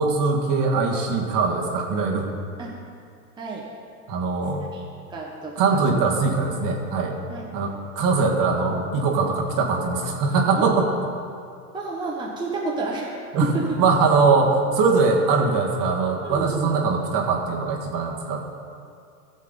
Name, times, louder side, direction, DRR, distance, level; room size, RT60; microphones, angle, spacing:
voice 1, 0.0-2.3 4.1-4.6 5.6-7.2 7.5-10.9 13.3-18.4, right 4 dB, 40° right, 0 dB, 1.8 m, -22 dB
voice 2, 3.4-3.7 4.7-4.8 5.1-5.8 7.3-7.5 10.5-10.7 11.7-13.1 13.4-13.7 16.2-16.7, right 3 dB, 10° right, -3 dB, 1.1 m, -30 dB
15.0 x 7.3 x 3.9 m, 2.4 s
hypercardioid pair, 110°, 46 cm